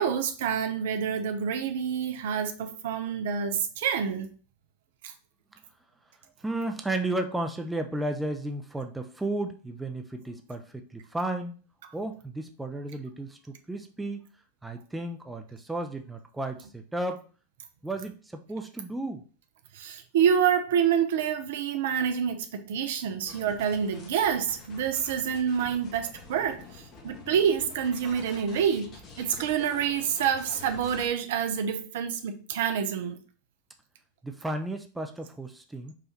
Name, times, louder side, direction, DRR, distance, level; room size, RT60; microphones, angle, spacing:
voice 1, 0.0-4.3 5.0-5.1 19.7-33.2, right 8 dB, 55° right, 0.6 m, -27 dB
voice 2, 6.4-11.5 11.9-13.4 13.7-14.2 14.6-17.2 17.8-19.2 34.2-35.9, right 2 dB, 5° right, 0.6 m, -33 dB
sound 1, 23.3-31.1, left 4 dB, 30° left, 0.9 m, -48 dB
4.8 x 2.5 x 4.3 m
figure-of-eight pair, 90°, 0 cm